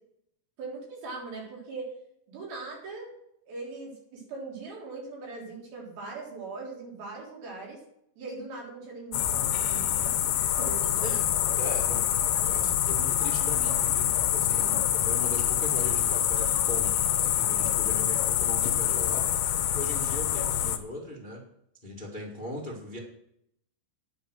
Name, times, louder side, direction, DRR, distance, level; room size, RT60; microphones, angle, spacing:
voice 1, 0.6-1.9 2.3-3.1 3.5-7.8 8.2-10.2 10.6-11.0, right 3 dB, 70° right, -4 dB, 5.5 m, -40 dB
sound 1, 9.1-20.8, left 11 dB, 85° left, 2.9 m, -26 dB
voice 2, 11.5-12.1 12.4-21.4 21.8-23.0, equal, 60° left, -1 dB, 0.5 m, -39 dB
10.0 x 9.0 x 6.2 m, 0.75 s
omnidirectional pair, 4.5 m